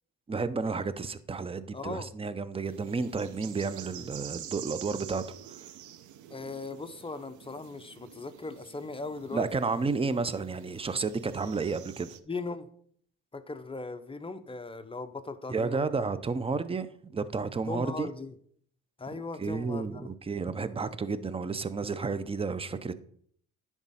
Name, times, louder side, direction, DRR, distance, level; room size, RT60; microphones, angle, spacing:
voice 1, 0.3-5.2 9.3-12.1 15.5-18.1 19.1-22.9, right 4 dB, 20° right, 0.6 m, -31 dB
voice 2, 1.7-2.1 6.3-9.5 12.3-12.7 13.3-15.9 17.7-18.3 19.0-20.1, left 3 dB, 20° left, 0.7 m, -38 dB
sound 1, 2.6-12.2, right 11 dB, 75° right, 0.7 m, -47 dB
10.5 x 3.6 x 5.5 m
cardioid pair, 90°, 30 cm